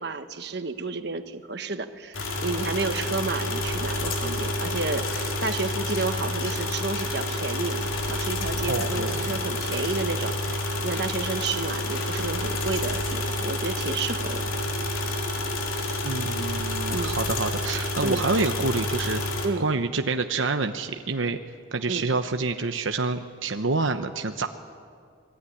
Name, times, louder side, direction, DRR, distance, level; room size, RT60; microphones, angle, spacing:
voice 1, 0.0-14.5 16.9-17.1 18.0-18.2 19.4-19.7 21.9-22.1, right 3 dB, 55° right, 9 dB, 1.3 m, -31 dB
sound 1, 2.1-19.5, left 1 dB, 90° left, 4.0 m, -29 dB
sound 2, 5.9-6.0 6.9-7.0 7.9-8.0 8.9-9.0 9.9-10.0 10.9-11.0 11.9-12.0 12.9-13.0 13.9-14.0 14.9-15.0, left 5 dB, 65° left, 3.3 m, -43 dB
voice 2, 8.7-9.4 16.0-19.2 19.6-21.4 21.7-24.5, right 3 dB, 75° right, 6 dB, 1.0 m, -27 dB
28.0 x 21.0 x 9.9 m, 2.3 s
head